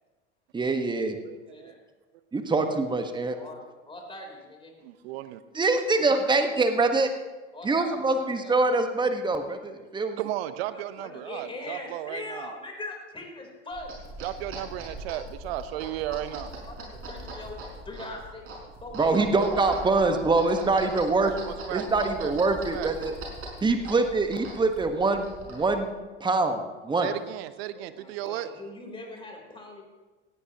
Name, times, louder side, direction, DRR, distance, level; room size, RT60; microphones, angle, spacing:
voice 1, 0.5-1.2 2.3-3.4 5.5-7.1 7.6-10.2 19.0-21.3 21.7-23.1 23.6-25.9 26.2-27.1, right 3 dB, 15° right, 6 dB, 1.4 m, -24 dB
voice 2, 1.2-1.7 3.1-3.5 4.8-5.4 10.2-12.5 14.2-16.5 19.0-22.9 27.0-28.5, right 14 dB, 60° right, 13 dB, 1.0 m, -35 dB
voice 3, 3.4-4.7 7.5-8.7 10.7-13.9 15.6-15.7 16.1-16.2 16.7-18.5 18.8-19.8 27.7-29.8, left 2 dB, 15° left, 1 dB, 3.8 m, -41 dB
sound 1, 13.7-25.9, right 1 dB, 40° right, 5.8 m, -41 dB
18.0 x 16.0 x 3.0 m, 1.3 s
figure-of-eight pair, 80°, 35 cm